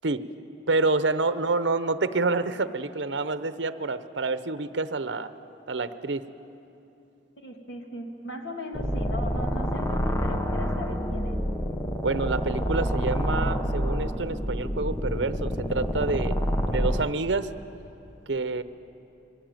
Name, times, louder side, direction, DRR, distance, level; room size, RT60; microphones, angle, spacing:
voice 1, 0.7-5.3 5.7-6.2 12.0-16.3 16.7-17.5 18.3-18.6, right 3 dB, 80° right, 12 dB, 0.8 m, -27 dB
voice 2, 7.4-11.4, left 1 dB, 75° left, 3 dB, 2.3 m, -38 dB
sound 1, 8.7-17.0, equal, 15° left, 1.0 m, -28 dB
23.0 x 17.0 x 9.1 m, 2.9 s
head